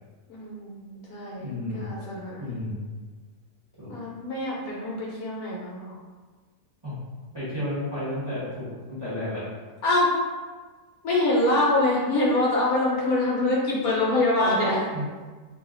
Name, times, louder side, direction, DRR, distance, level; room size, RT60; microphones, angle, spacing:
voice 1, 0.3-2.6 3.9-5.9 9.8-10.2 11.0-14.8, left 2 dB, 70° left, -5 dB, 1.1 m, -25 dB
voice 2, 1.4-1.8 2.4-2.8 3.8-4.0 6.8-7.0 7.3-9.5 14.4-15.1, left 1 dB, 20° right, -10 dB, 0.9 m, -32 dB
2.7 x 2.4 x 3.7 m, 1.4 s
omnidirectional pair, 1.7 m